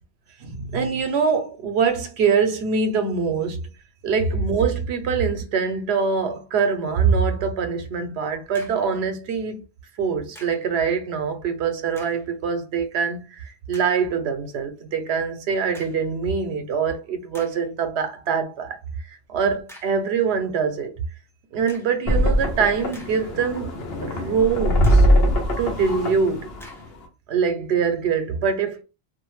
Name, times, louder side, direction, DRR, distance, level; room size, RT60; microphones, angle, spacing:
voice 1, 0.4-3.7 4.0-9.6 10.0-20.9 21.5-23.8 24.0-25.1 25.6-26.5 27.3-28.8, right 6 dB, 85° right, 0.9 m, -24 dB
sound 1, 8.5-9.0 10.4-10.7 11.9-12.3 12.9-13.0 13.7-14.0 15.7-16.1 16.8-16.9 17.3-17.7 19.7-20.1 21.7-22.0 22.7-23.5 23.9-24.0 24.8-25.2 26.6-27.0, equal, 5° left, 0.4 m, -47 dB
sound 2, 22.1-27.1, equal, 70° left, 0.9 m, -21 dB
2.5 x 2.1 x 3.1 m
omnidirectional pair, 1.1 m